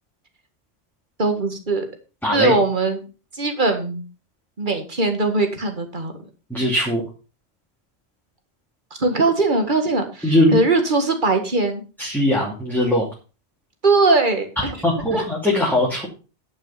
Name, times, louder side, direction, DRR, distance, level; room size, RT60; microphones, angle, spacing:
voice 1, 1.2-1.9 2.3-3.0 3.3-4.0 4.6-6.1 9.0-11.8 13.8-14.8 15.1-15.3, right 3 dB, 50° right, 6 dB, 2.0 m, -20 dB
voice 2, 2.2-2.5 6.5-7.0 10.2-10.6 12.0-13.0 14.8-16.1, left 1 dB, ahead, -4 dB, 2.6 m, -20 dB
10.5 x 6.2 x 5.7 m, 0.34 s
omnidirectional pair, 1.1 m